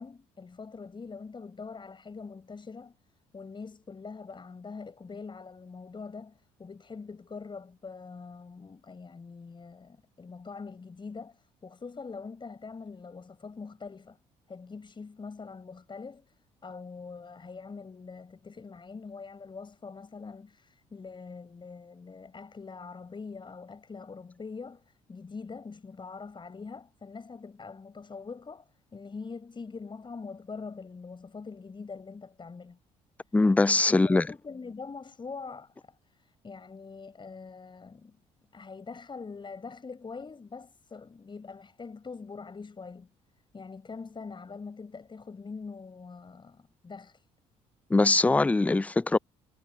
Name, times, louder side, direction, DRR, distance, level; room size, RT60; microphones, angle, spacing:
voice 1, 0.0-3.0 3.3-14.2 14.5-32.8 33.9-38.2 38.5-43.1 43.5-47.3, left 4 dB, 35° left, 7.5 m, -43 dB
voice 2, 33.3-34.3 47.9-49.2, left 3 dB, 10° left, 0.4 m, -22 dB
supercardioid pair, 65°, 15 cm